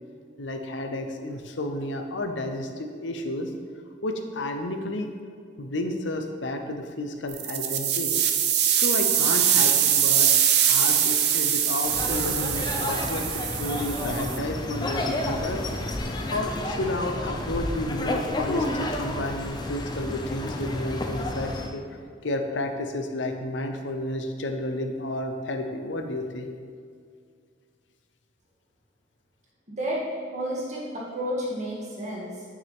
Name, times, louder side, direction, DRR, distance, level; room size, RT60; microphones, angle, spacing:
voice 1, 0.4-3.5 4.0-5.1 5.6-8.1 8.6-15.6 16.3-21.8 22.2-26.5, left 1 dB, 80° left, 5 dB, 0.8 m, -31 dB
sound 1, 7.3-14.4, right 9 dB, 60° right, 0.7 m, -23 dB
sound 2, 11.8-21.7, left 1 dB, 20° left, 0.6 m, -31 dB
voice 2, 29.7-32.4, equal, 40° right, -5 dB, 2.0 m, -31 dB
9.4 x 6.1 x 3.6 m, 2.2 s
head